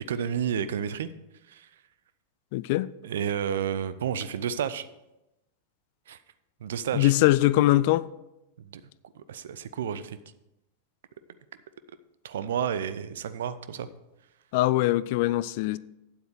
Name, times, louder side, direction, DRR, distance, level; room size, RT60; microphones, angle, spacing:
voice 1, 0.1-1.1 1.5-1.7 3.0-4.9 6.1-6.2 6.6-7.1 8.7-8.8 9.1-10.2 12.2-13.9, right 8 dB, 60° right, 0.5 m, -31 dB
voice 2, 2.5-2.9 6.9-8.1 14.5-15.8, left 16 dB, 50° left, 0.3 m, -22 dB
9.1 x 7.8 x 4.8 m
figure-of-eight pair, 90°, 0 cm